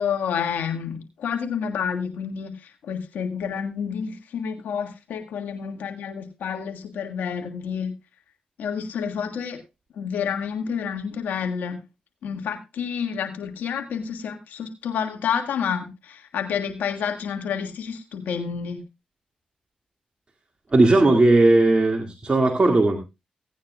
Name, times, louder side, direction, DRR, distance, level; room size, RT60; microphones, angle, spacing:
voice 1, 0.0-7.9 8.6-9.6 10.0-11.8 12.2-18.8, left 7 dB, 80° left, 4 dB, 1.7 m, -29 dB
voice 2, 20.7-23.0, right 2 dB, 35° right, 2 dB, 2.1 m, -17 dB
17.0 x 9.3 x 2.3 m, 0.26 s
supercardioid pair, 45°, 3 cm